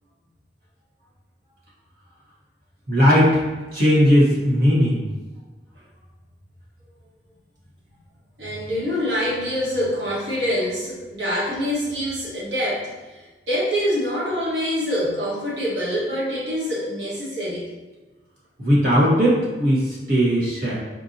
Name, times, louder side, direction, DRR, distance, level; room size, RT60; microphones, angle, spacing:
voice 1, 2.9-3.4 3.7-5.0 18.6-20.7, equal, 55° right, -7 dB, 1.3 m, -18 dB
voice 2, 8.4-17.6, equal, 80° right, -7 dB, 1.3 m, -25 dB
4.5 x 2.7 x 2.6 m, 1.3 s
head